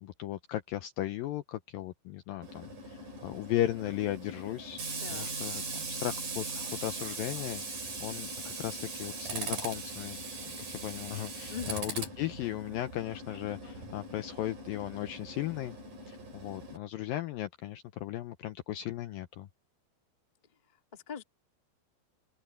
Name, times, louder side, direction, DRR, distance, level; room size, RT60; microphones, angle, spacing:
voice 1, 0.0-4.8 5.1-10.2 10.6-15.8 16.1-19.5, left 13 dB, 75° left, 2.1 m, -36 dB
Tools, 2.4-16.8, right 3 dB, 50° right, 7.2 m, -40 dB
voice 2, 5.0-5.4 11.5-11.8 20.9-21.2, left 8 dB, 20° left, 1.0 m, -41 dB
open air
omnidirectional pair, 4.8 m